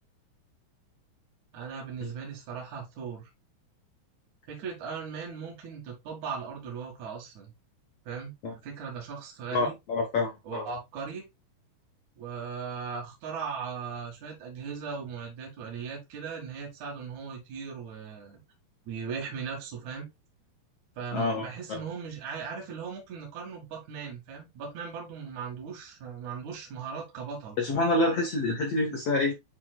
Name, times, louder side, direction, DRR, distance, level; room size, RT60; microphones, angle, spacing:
voice 1, 1.5-3.3 4.5-7.5 8.0-8.3 8.6-9.7 10.4-11.3 12.2-18.4 18.9-20.1 21.0-27.6, right 6 dB, 50° right, 2.8 m, -38 dB
voice 2, 9.5-10.6 21.1-21.8 27.6-29.3, left 2 dB, 65° left, 1.5 m, -27 dB
10.5 x 3.8 x 2.3 m
omnidirectional pair, 5.1 m